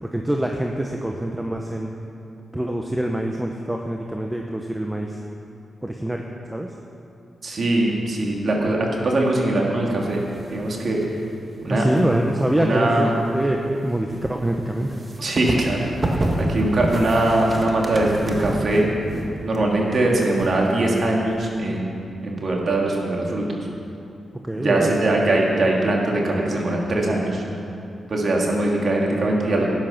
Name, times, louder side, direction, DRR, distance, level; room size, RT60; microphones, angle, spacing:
voice 1, 0.0-1.9 2.5-5.2 5.8-6.2 6.5-6.7 11.7-14.9 24.4-24.9, right 1 dB, 10° right, 2 dB, 0.9 m, -25 dB
voice 2, 7.4-10.2 10.5-11.0 11.6-12.0 12.5-13.1 15.2-18.9 19.4-23.6 24.5-27.4 28.1-29.7, right 2 dB, 55° right, -1 dB, 2.6 m, -21 dB
sound 1, 10.0-11.4 11.7-21.4, right 1 dB, 35° right, 1.6 m, -29 dB
13.0 x 10.0 x 5.9 m, 2.7 s
cardioid pair, 65°, 0 cm